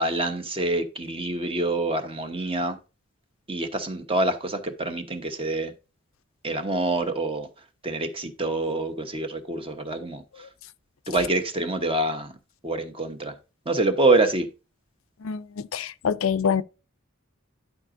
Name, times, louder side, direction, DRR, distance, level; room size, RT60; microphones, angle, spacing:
voice 1, 0.0-2.8 3.5-5.7 6.4-7.5 7.8-10.5 11.1-12.3 12.6-13.4 13.6-14.5, right 2 dB, 25° right, 1.0 m, -26 dB
voice 2, 15.2-16.6, left 7 dB, 75° left, 0.5 m, -26 dB
11.5 x 5.1 x 2.6 m
head